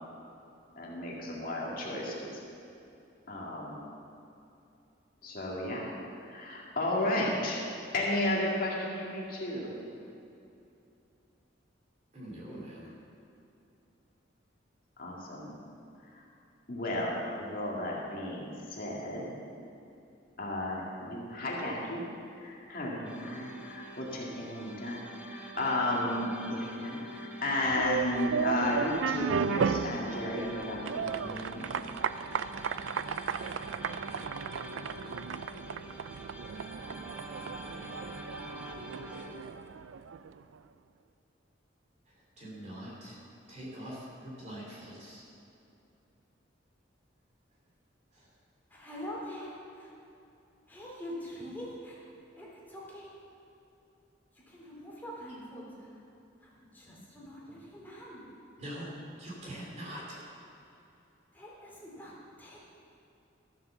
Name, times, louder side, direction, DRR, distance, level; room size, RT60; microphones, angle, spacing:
voice 1, 0.8-2.4 3.3-3.9 5.2-5.8 6.2-7.7 7.9-9.8 15.0-15.6 16.1-16.2 16.7-19.4 20.4-22.1 22.4-31.7, left 1 dB, 50° left, -4 dB, 2.0 m, -33 dB
voice 2, 12.1-12.9 33.0-33.2 42.4-43.2 43.5-45.2 48.1-48.3 58.6-58.9 59.2-60.2, equal, 35° right, -4 dB, 3.2 m, -43 dB
sound 1, 23.0-39.4, equal, 5° right, 0.9 m, -46 dB
sound 2, 27.6-40.4, right 6 dB, 90° right, 0.4 m, -35 dB
voice 3, 48.7-49.9 50.7-53.1 54.5-56.0 56.4-58.2 61.3-62.1 62.4-62.6, equal, 10° left, -5 dB, 2.9 m, -44 dB
13.5 x 7.3 x 7.0 m, 2.7 s
head